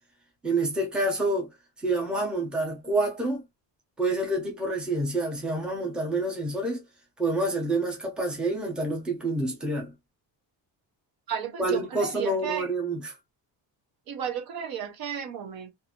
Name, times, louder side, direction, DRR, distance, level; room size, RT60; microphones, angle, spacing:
voice 1, 0.4-1.5 1.8-3.4 4.0-6.8 7.2-9.9 11.6-13.1, right 2 dB, ahead, 0.7 m, -28 dB
voice 2, 11.3-12.7 14.1-15.7, right 8 dB, 55° right, 0.8 m, -33 dB
2.7 x 2.6 x 2.8 m
cardioid pair, 175°, 44 cm